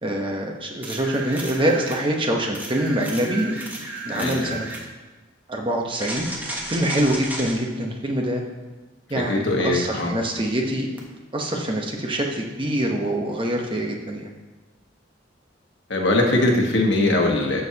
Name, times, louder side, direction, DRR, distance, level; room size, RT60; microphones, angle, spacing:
voice 1, 0.0-3.5 4.0-4.7 5.5-8.4 9.1-10.9 11.3-14.3, right 1 dB, 25° right, 1 dB, 1.1 m, -25 dB
sound 1, 0.8-2.0 2.5-4.9 6.0-7.6 11.0-11.1, right 2 dB, 10° right, 1.3 m, -33 dB
voice 2, 4.1-4.5 9.1-10.1 15.9-17.6, left 2 dB, 70° left, 0 dB, 1.5 m, -21 dB
13.5 x 6.5 x 2.9 m, 1.2 s
head